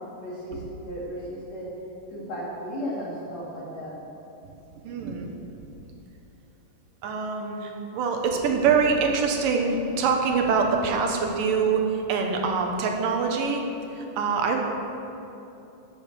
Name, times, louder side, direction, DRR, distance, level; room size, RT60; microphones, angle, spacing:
voice 1, 0.2-1.7 2.1-4.0, equal, 55° left, -6 dB, 3.9 m, -35 dB
voice 2, 4.8-5.3 7.0-13.7 13.9-14.6, right 5 dB, 90° right, 3 dB, 2.8 m, -24 dB
12.0 x 8.1 x 6.4 m, 2.9 s
omnidirectional pair, 3.8 m